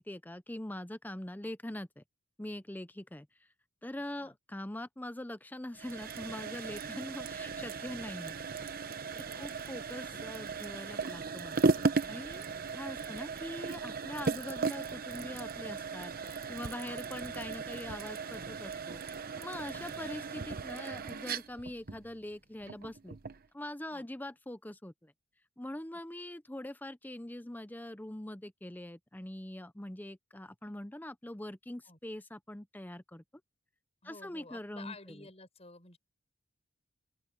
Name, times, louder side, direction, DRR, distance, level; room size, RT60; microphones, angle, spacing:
voice 1, 0.0-2.0 2.4-3.3 3.8-8.4 9.1-11.6 12.1-12.5 12.7-19.0 19.4-23.2 23.5-25.1 25.6-33.2 34.0-34.9, left 1 dB, 10° left, 0.7 m, -43 dB
sound 1, 5.7-23.5, right 4 dB, 50° right, 0.9 m, -36 dB
voice 2, 9.1-9.4 11.7-12.2 12.6-12.8 13.1-13.3 16.8-17.0 19.6-19.9 23.9-24.0 26.2-26.3 31.8-32.0 34.0-36.0, left 3 dB, 30° left, 6.8 m, -53 dB
open air
head